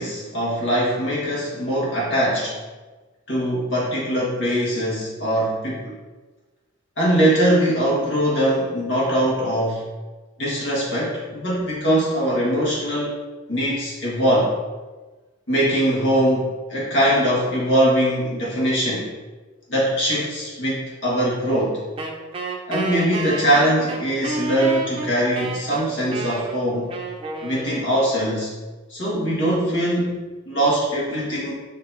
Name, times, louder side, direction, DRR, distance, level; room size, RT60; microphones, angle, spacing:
voice 1, 0.0-2.6 3.3-5.9 7.0-9.8 10.4-13.2 13.5-14.5 15.5-19.1 19.7-21.8 22.7-26.9 27.4-28.5 28.9-31.5, right 1 dB, 70° left, -6 dB, 1.7 m, -22 dB
Wind instrument woodwind instrument, 22.0-28.3, right 2 dB, 30° right, 0.7 m, -31 dB
8.3 x 2.8 x 4.0 m, 1.2 s
head